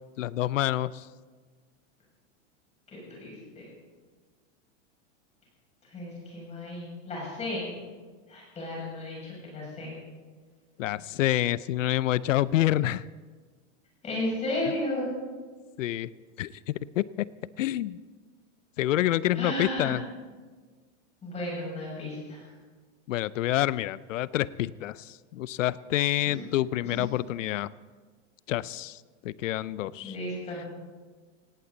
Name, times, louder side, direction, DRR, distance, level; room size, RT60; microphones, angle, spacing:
voice 1, 0.2-1.1 10.8-13.0 15.8-16.1 16.4-17.3 17.6-18.0 18.8-20.0 23.1-27.7 28.5-30.2, left 14 dB, 90° left, 19 dB, 0.6 m, -28 dB
voice 2, 2.9-3.7 5.8-7.7 8.3-10.0 14.0-15.1 19.3-20.0 21.2-22.5 26.3-26.4 26.8-27.0 30.0-30.6, left 1 dB, 15° left, -4 dB, 6.8 m, -34 dB
18.5 x 17.5 x 4.1 m, 1.4 s
supercardioid pair, 160°, 37 cm